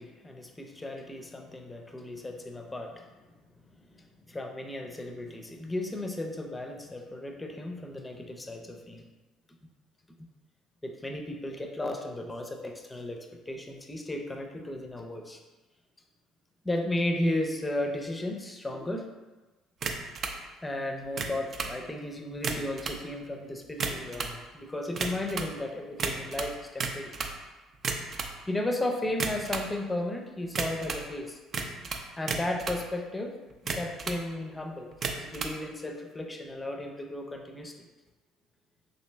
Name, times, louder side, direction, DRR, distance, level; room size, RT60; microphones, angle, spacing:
voice 1, 0.0-3.1 3.9-9.0 10.8-15.4 16.6-19.1 20.6-27.1 28.5-31.4 32.2-33.3 33.7-34.9 35.2-37.7, left 1 dB, 15° left, 3 dB, 0.5 m, -34 dB
sound 1, 19.8-20.4 21.0-21.8 22.3-23.0 23.6-24.4 24.9-25.5 26.0-27.4 27.7-28.3 29.1-29.7 30.5-31.1 31.5-32.8 33.5-34.2 34.9-35.6, right 4 dB, 50° right, 0.4 m, -33 dB
3.2 x 2.7 x 3.3 m, 1.2 s
supercardioid pair, 75°, 0 cm